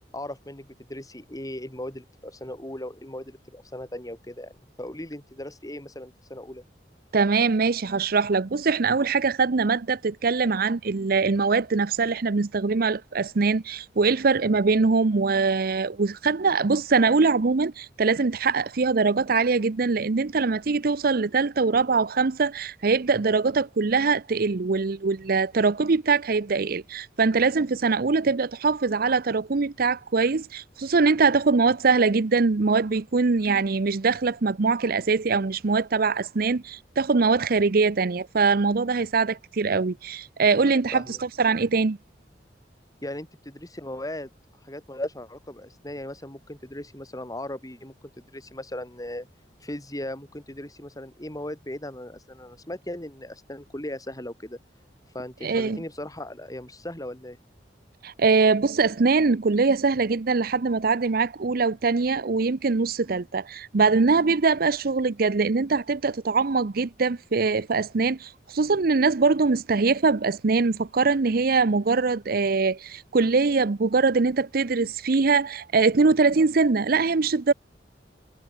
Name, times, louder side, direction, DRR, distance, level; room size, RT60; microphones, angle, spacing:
voice 1, 0.1-6.6 40.9-41.2 43.0-44.3 44.6-49.3 49.6-54.6 55.1-57.4, left 1 dB, 20° left, 4.6 m, -37 dB
voice 2, 7.1-42.0 55.4-55.8 58.0-77.5, right 4 dB, 55° right, 0.6 m, -22 dB
head